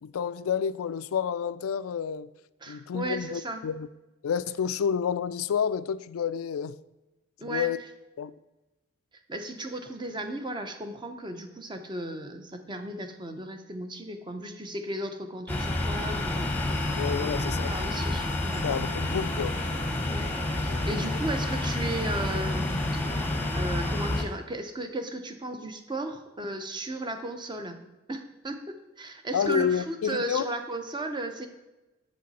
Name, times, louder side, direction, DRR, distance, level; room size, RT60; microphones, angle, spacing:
voice 1, 0.0-2.3 2.7-3.9 4.2-6.7 7.4-7.8 8.2-8.3 16.9-17.7 18.6-19.6 20.7-20.9 29.3-30.5, left 7 dB, 80° left, 0.4 m, -29 dB
voice 2, 2.6-3.6 7.4-7.7 9.3-17.3 17.7-18.9 20.1-20.3 20.6-22.8 23.1-23.3 23.6-27.8 28.1-31.5, right 1 dB, 20° right, 0.7 m, -35 dB
sound 1, 15.5-24.2, left 2 dB, 5° left, 0.9 m, -29 dB
7.6 x 7.5 x 4.2 m
head